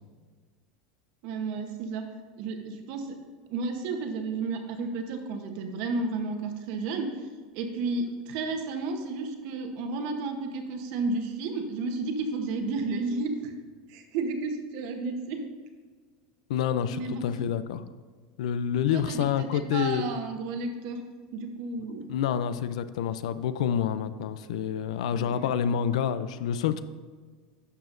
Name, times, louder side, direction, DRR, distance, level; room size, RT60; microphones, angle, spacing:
voice 1, 1.2-2.0 2.4-3.1 3.5-7.3 7.5-13.5 13.9-15.4 16.9-17.2 18.9-21.0 21.3-22.0 25.1-25.5, right 3 dB, 45° right, 5 dB, 1.0 m, -32 dB
voice 2, 16.5-17.8 18.4-20.1 22.1-26.8, left 8 dB, 85° left, 13 dB, 0.5 m, -28 dB
12.0 x 7.0 x 2.6 m, 1.5 s
supercardioid pair, 180°, 3 cm